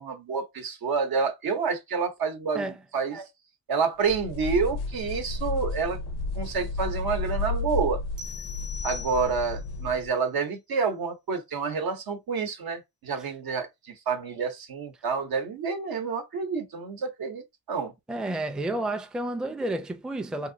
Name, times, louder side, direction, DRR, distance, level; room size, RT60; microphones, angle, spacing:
voice 1, 0.0-3.3 3.7-6.0 6.4-8.0 8.8-17.4 17.7-17.9, right 5 dB, 70° right, 0.9 m, -28 dB
sound 1, 4.1-10.1, left 3 dB, 90° left, 0.6 m, -32 dB
sound 2, 8.2-9.7, left 5 dB, 30° right, 0.7 m, -40 dB
voice 2, 18.1-20.5, right 1 dB, ahead, 0.4 m, -31 dB
2.8 x 2.8 x 2.6 m
cardioid pair, 55°, 38 cm